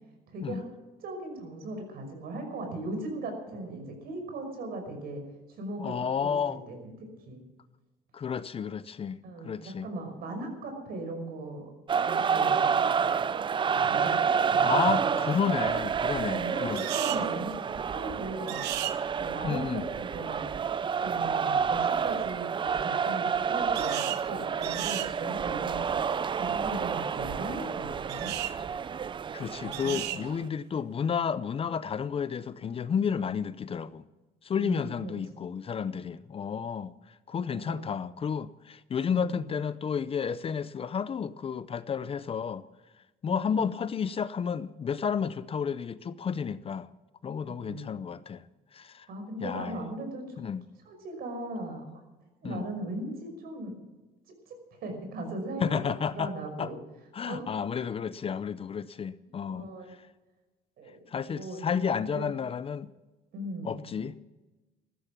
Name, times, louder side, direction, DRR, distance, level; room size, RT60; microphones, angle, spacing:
voice 1, 0.3-0.7 1.0-5.2 5.5-7.4 9.2-11.7 12.0-13.2 13.7-15.5 16.3-18.7 19.2-20.5 21.0-25.9 26.4-28.3 29.6-30.0 34.6-35.1 37.7-37.9 39.1-39.4 43.3-43.6 47.4-47.9 49.1-50.4 50.9-51.9 52.4-53.8 54.5-54.6 54.8-56.8 57.2-57.4 59.5-60.0 60.8-61.0 61.3-61.6 62.1-62.3 63.3-64.0, right 2 dB, 65° right, 5.6 m, -38 dB
voice 2, 5.8-6.6 8.1-9.9 14.6-16.9 19.4-19.9 29.3-34.0 34.4-42.6 43.2-46.9 47.2-48.4 48.7-49.1 49.4-49.9 50.4-50.6 52.4-52.7 55.6-56.3 56.6-56.7 57.1-59.7 61.1-62.9 63.6-64.2, left 7 dB, 35° left, 0.6 m, -31 dB
sound 1, 11.9-30.4, right 6 dB, 30° right, 0.5 m, -29 dB
sound 2, 16.7-17.2 18.5-19.0 23.7-24.2 24.6-25.1 28.1-28.5 29.7-30.2, right 14 dB, 85° right, 0.9 m, -34 dB
14.5 x 14.0 x 6.0 m
cardioid pair, 110°, 17 cm